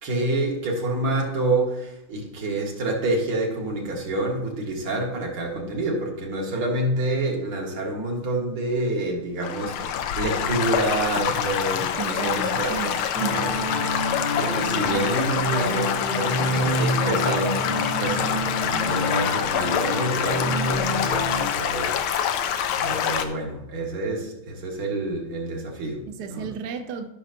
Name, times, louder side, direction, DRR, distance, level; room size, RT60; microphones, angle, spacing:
voice 1, 0.0-12.9 13.3-13.9 14.4-22.5 22.8-26.5, right 2 dB, 80° right, 2.6 m, -28 dB
Stream / Gurgling / Trickle dribble, 9.4-23.2, left 9 dB, 90° left, 1.6 m, -26 dB
voice 2, 12.0-13.5 26.1-27.1, right 6 dB, 60° right, 1.1 m, -34 dB
sound 1, 13.1-21.5, equal, 50° left, 1.5 m, -28 dB
14.0 x 6.1 x 2.8 m
omnidirectional pair, 2.3 m